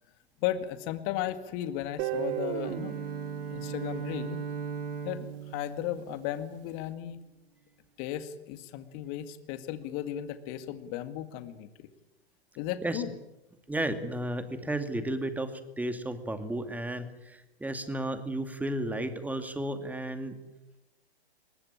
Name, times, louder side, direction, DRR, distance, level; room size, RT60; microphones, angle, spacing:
voice 1, 0.4-3.0 3.5-4.4 5.0-7.2 8.0-11.9 12.6-13.1, left 12 dB, 40° left, 11 dB, 2.0 m, -35 dB
Guitar, 2.0-4.9, right 14 dB, 35° right, 1.0 m, -37 dB
Bowed string instrument, 2.1-6.8, right 7 dB, 70° right, 7.3 m, -38 dB
voice 2, 13.7-20.4, right 1 dB, 5° right, 9 dB, 2.4 m, -33 dB
22.5 x 21.0 x 8.9 m, 0.97 s
hypercardioid pair, 115°, 31 cm